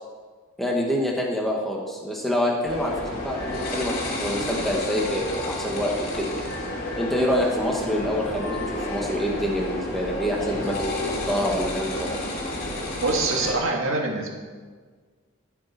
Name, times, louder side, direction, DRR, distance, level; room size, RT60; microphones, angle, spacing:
voice 1, 0.6-6.4 7.0-12.3, equal, ahead, -2 dB, 1.9 m, -26 dB
sound 1, 2.7-13.5, left 1 dB, 40° left, 3.0 m, -31 dB
voice 2, 12.9-14.3, right 3 dB, 70° right, 0 dB, 2.1 m, -24 dB
15.5 x 8.4 x 4.5 m, 1.5 s
head